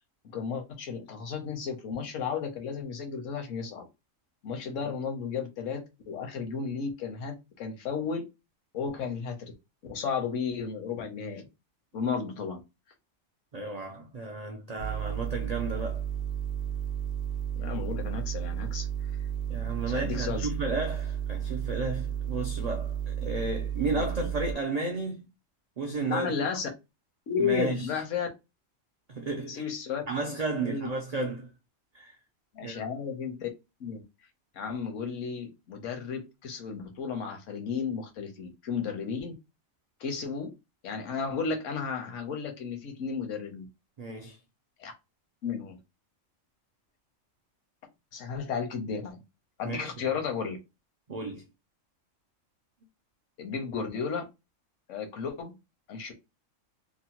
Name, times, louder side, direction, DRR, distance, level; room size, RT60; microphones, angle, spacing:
voice 1, 0.2-3.9 4.4-8.3 8.7-9.5 9.8-11.5 11.9-12.6 17.6-18.9 19.9-20.5 23.9-24.0 26.1-26.7 27.3-28.3 29.5-30.0 30.6-30.9 32.5-33.5 33.8-34.0 34.5-39.3 40.0-40.5 40.8-43.7 44.8-44.9 45.4-45.8 48.1-49.2 49.6-50.6 53.4-54.3 54.9-55.5 55.9-56.1, left 6 dB, 75° left, 1.1 m, -33 dB
voice 2, 13.5-16.0 19.5-25.3 25.8-26.4 27.4-27.9 29.1-29.6 30.1-31.5 31.9-32.2 32.6-32.9 44.0-44.4 49.6-50.2 51.1-51.5, right 3 dB, 65° right, 0.4 m, -33 dB
sound 1, 14.8-24.5, right 9 dB, 60° left, 0.7 m, -33 dB
2.9 x 2.0 x 2.8 m
omnidirectional pair, 1.3 m